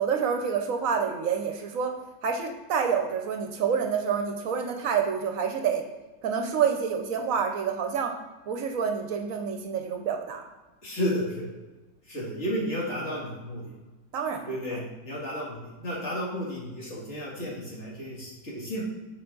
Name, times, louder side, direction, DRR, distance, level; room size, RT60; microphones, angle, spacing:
voice 1, 0.0-2.0 2.2-5.9 6.2-8.2 8.5-10.4 14.1-14.9, right 6 dB, 70° right, 5 dB, 1.0 m, -28 dB
voice 2, 10.8-11.5 12.1-13.6 14.5-18.8, equal, 50° left, -6 dB, 2.3 m, -32 dB
7.1 x 4.8 x 3.8 m, 1.2 s
omnidirectional pair, 1.6 m